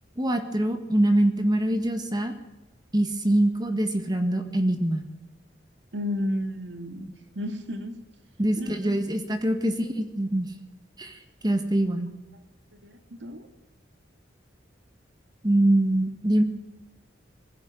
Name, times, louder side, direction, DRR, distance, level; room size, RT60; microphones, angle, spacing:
voice 1, 0.2-2.3 2.9-5.0 8.4-10.5 11.0-12.1 15.4-16.4, right 1 dB, 25° right, 7 dB, 1.8 m, -24 dB
voice 2, 5.9-8.0 8.6-9.1 12.8-12.9 13.2-13.5, left 1 dB, 75° right, 8 dB, 2.4 m, -32 dB
21.0 x 15.5 x 9.2 m, 1.0 s
head